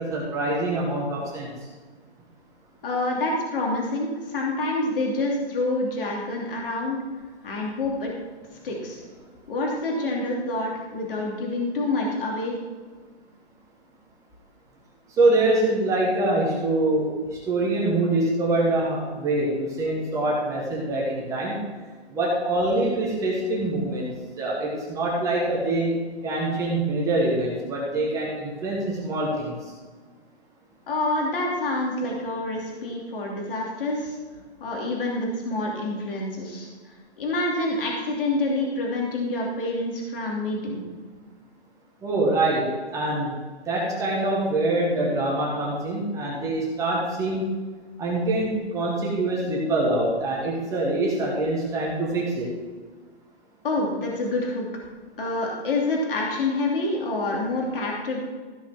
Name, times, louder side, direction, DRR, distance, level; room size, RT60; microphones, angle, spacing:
voice 1, 0.0-1.5 15.2-21.6 22.1-24.1 24.4-25.9 26.2-29.5 42.0-43.3 43.7-47.4 48.0-52.5, right 2 dB, 10° right, -4 dB, 1.4 m, -24 dB
voice 2, 2.8-7.0 7.4-8.1 8.6-9.0 9.5-12.6 30.9-34.2 34.6-36.7 37.2-40.8 53.6-54.7 55.2-58.2, left 2 dB, 55° left, -1 dB, 3.0 m, -27 dB
15.0 x 5.7 x 5.9 m, 1.4 s
hypercardioid pair, 165°, 33 cm